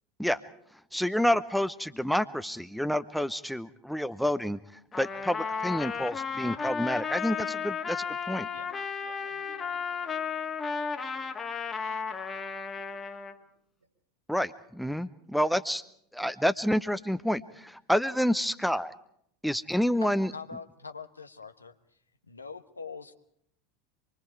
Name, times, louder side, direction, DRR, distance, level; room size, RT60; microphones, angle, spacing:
voice 1, 0.9-8.5 14.3-15.8 16.1-18.9 19.4-20.3, equal, ahead, 13 dB, 0.8 m, -29 dB
Trumpet, 4.9-13.4, left 5 dB, 20° left, 1.8 m, -34 dB
voice 2, 9.0-11.5 11.8-13.5 13.8-13.9, right 3 dB, 85° right, -1 dB, 5.6 m, -56 dB
voice 3, 20.0-21.7 22.3-23.1, left 5 dB, 80° left, 9 dB, 1.2 m, -43 dB
26.0 x 23.5 x 4.7 m, 0.70 s
figure-of-eight pair, 80°, 0 cm